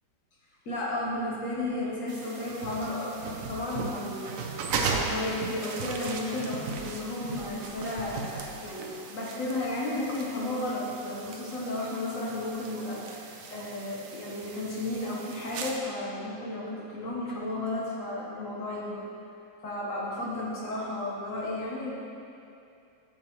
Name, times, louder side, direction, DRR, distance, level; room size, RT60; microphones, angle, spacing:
voice 1, 0.7-4.5 4.8-19.1 19.6-21.9, left 1 dB, 50° left, -4 dB, 1.2 m, -33 dB
sound 1, 2.1-15.8, right 4 dB, 70° right, 0.8 m, -37 dB
7.6 x 7.1 x 3.0 m, 2.6 s
omnidirectional pair, 2.0 m